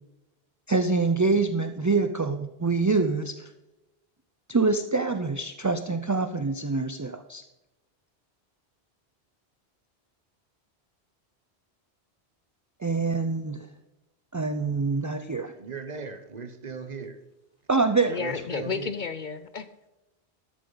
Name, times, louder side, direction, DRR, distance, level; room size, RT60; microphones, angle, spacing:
voice 1, 0.7-3.5 4.5-7.4 12.8-13.6 14.3-15.5 17.7-18.2, right 3 dB, 30° right, 0.4 m, -25 dB
voice 2, 15.6-17.2 18.2-18.9, right 5 dB, 45° right, 1.0 m, -38 dB
voice 3, 18.1-19.9, left 5 dB, 55° left, 0.7 m, -33 dB
13.0 x 8.6 x 3.9 m
omnidirectional pair, 1.1 m